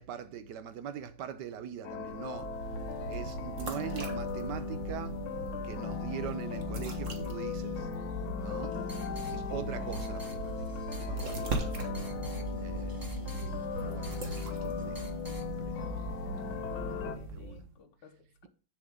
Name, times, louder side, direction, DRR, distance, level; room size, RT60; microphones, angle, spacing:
voice 1, 0.0-2.5 3.1-5.2 5.6-7.9 8.4-8.8 9.3-10.7 11.1-11.8 12.6-13.1 13.8-14.2 14.6-15.0 15.4-15.9 16.3-16.4 17.3-17.6, right 8 dB, 70° right, 1.1 m, -42 dB
sound 1, 1.8-17.2, left 6 dB, 85° left, 1.7 m, -39 dB
sound 2, 1.8-17.7, right 1 dB, 40° right, 1.6 m, -39 dB
sound 3, 8.4-15.5, right 1 dB, 20° right, 0.5 m, -51 dB
voice 2, 8.9-9.2 16.7-18.5, left 6 dB, 65° left, 1.6 m, -55 dB
7.8 x 7.2 x 3.7 m
omnidirectional pair, 2.2 m